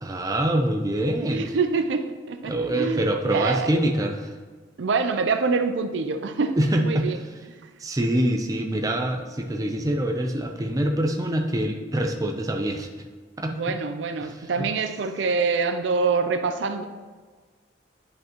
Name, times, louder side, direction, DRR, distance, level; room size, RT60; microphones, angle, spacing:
voice 1, 0.0-1.5 2.4-4.3 6.6-7.1 7.8-12.9 13.4-13.5 14.2-14.5, right 1 dB, 20° right, 3 dB, 0.5 m, -25 dB
voice 2, 1.2-3.7 4.8-7.2 13.5-16.8, right 4 dB, 75° right, 8 dB, 0.5 m, -25 dB
10.0 x 5.3 x 2.9 m, 1.5 s
head